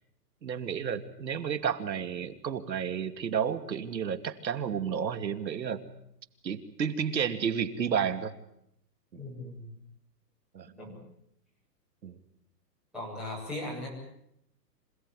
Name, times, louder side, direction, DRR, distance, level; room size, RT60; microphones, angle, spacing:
voice 1, 0.4-5.8 6.4-8.3 9.1-9.2 10.5-10.7 12.0-12.2, right 7 dB, 85° right, 9 dB, 2.6 m, -31 dB
voice 2, 9.1-9.7 10.7-11.0 12.9-13.9, left 1 dB, ahead, -7 dB, 7.0 m, -38 dB
27.0 x 17.5 x 9.9 m, 0.76 s
hypercardioid pair, 180°, 50 cm